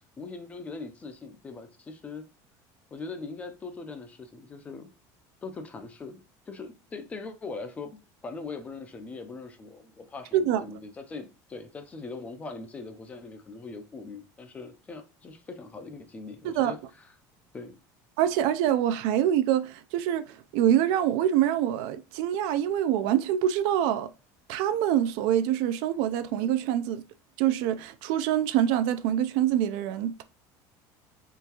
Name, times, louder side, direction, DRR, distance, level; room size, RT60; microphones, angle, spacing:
voice 1, 0.2-2.2 2.9-4.9 5.4-8.0 8.2-16.8 17.5-17.8, left 4 dB, 15° left, 0.4 m, -41 dB
voice 2, 10.3-10.8 16.4-16.7 18.2-24.1 24.5-27.0 27.4-30.2, right 11 dB, 65° right, 0.4 m, -25 dB
3.8 x 3.4 x 2.8 m
cardioid pair, 175°, 9 cm